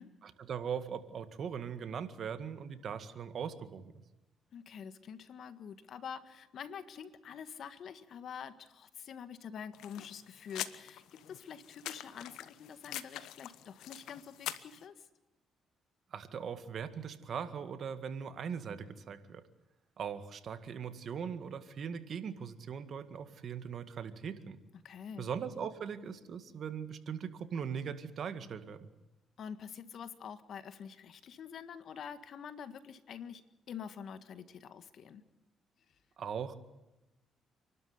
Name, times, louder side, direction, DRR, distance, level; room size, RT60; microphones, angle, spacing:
voice 1, 0.2-3.9 16.1-19.4 20.0-24.6 25.2-28.9 36.2-36.5, right 7 dB, 60° right, 10 dB, 1.9 m, -40 dB
voice 2, 4.5-15.1 24.8-25.3 29.4-35.2, left 7 dB, 65° left, 12 dB, 1.6 m, -46 dB
sound 1, 9.7-14.8, left 12 dB, 85° left, 1.0 m, -44 dB
28.0 x 12.5 x 9.6 m, 1.0 s
cardioid pair, 90°, 0 cm